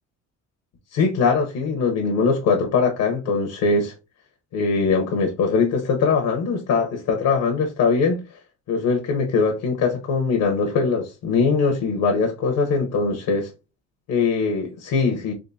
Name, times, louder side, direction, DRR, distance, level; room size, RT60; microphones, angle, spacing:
voice 1, 0.9-3.9 4.5-8.2 8.7-13.5 14.1-15.3, left 4 dB, 80° left, 1.0 m, -21 dB
3.7 x 3.2 x 2.7 m
cardioid pair, 90°, 30 cm